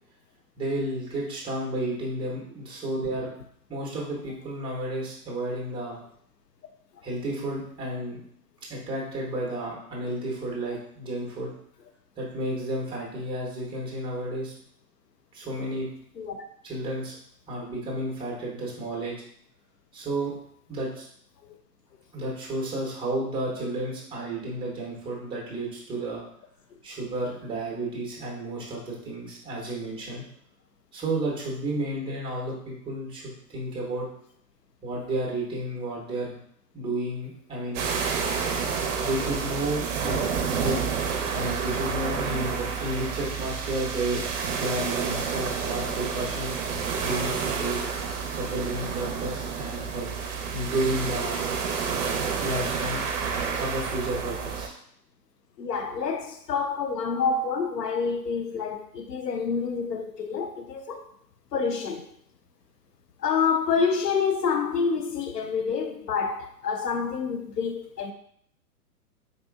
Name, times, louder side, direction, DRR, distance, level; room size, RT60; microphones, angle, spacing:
voice 1, 0.6-3.3 3.7-6.0 7.0-8.2 8.7-11.5 12.2-14.5 15.3-15.9 16.6-17.2 17.5-19.1 19.9-20.3 20.7-21.1 22.1-26.2 26.8-30.2 30.9-34.1 34.8-36.4 36.7-37.9 38.9-40.2 40.5-40.8 41.3-44.2 44.5-47.8 48.3-50.1 50.5-51.4 52.4-53.1 53.5-54.8, right 1 dB, 10° right, 0.9 m, -32 dB
sound 1, 37.7-54.7, right 6 dB, 50° right, 0.7 m, -29 dB
voice 2, 55.6-61.1 61.5-62.1 63.2-68.1, left 5 dB, 85° left, 0.7 m, -27 dB
4.1 x 2.8 x 2.3 m
hypercardioid pair, 120°, 47 cm